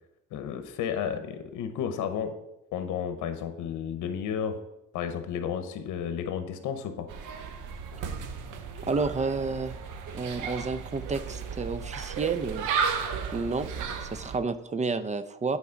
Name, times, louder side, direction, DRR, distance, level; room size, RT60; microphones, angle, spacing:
voice 1, 0.3-2.3 2.7-4.6 4.9-7.1, left 8 dB, 85° left, 8 dB, 0.8 m, -32 dB
sound 1, 7.1-14.4, right 6 dB, 85° right, 0.8 m, -34 dB
voice 2, 8.9-9.8 10.1-12.7 13.3-13.7 14.0-15.6, right 4 dB, 25° right, 13 dB, 0.5 m, -30 dB
8.5 x 4.0 x 5.1 m, 0.88 s
cardioid pair, 90°, 30 cm